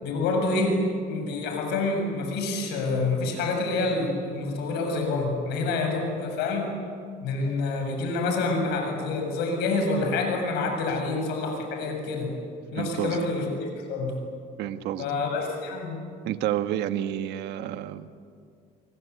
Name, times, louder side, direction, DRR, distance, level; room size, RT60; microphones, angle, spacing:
voice 1, 0.0-6.8 7.2-12.3 12.7-14.2 15.0-16.0, left 3 dB, 85° left, 4 dB, 7.2 m, -27 dB
voice 2, 12.7-13.2 14.6-15.1 16.2-18.1, right 12 dB, 85° right, 10 dB, 1.4 m, -30 dB
27.0 x 24.5 x 8.3 m, 2.2 s
cardioid pair, 110°, 17 cm